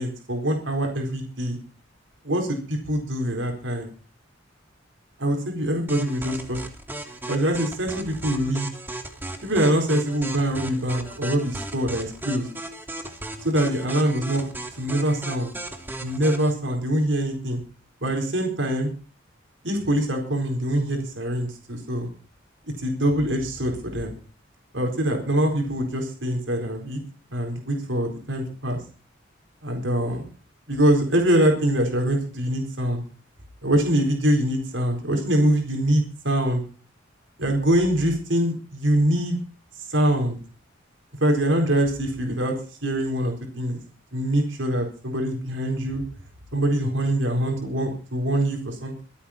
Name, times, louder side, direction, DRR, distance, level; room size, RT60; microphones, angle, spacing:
voice 1, 0.0-1.6 2.2-3.9 5.2-6.6 7.3-8.7 9.4-12.5 13.4-14.4 14.8-15.5 16.0-17.6 18.0-18.9 19.6-22.1 22.8-24.1 24.7-27.0 27.3-28.8 29.6-30.2 30.7-33.0 33.6-36.6 37.4-39.4 39.9-40.4 41.2-42.5 42.8-43.8 44.1-46.0 46.5-49.0, right 1 dB, 70° right, 2 dB, 4.3 m, -24 dB
sound 1, 5.9-16.5, right 1 dB, 10° right, 1.6 m, -36 dB
24.5 x 8.6 x 4.3 m, 0.38 s
head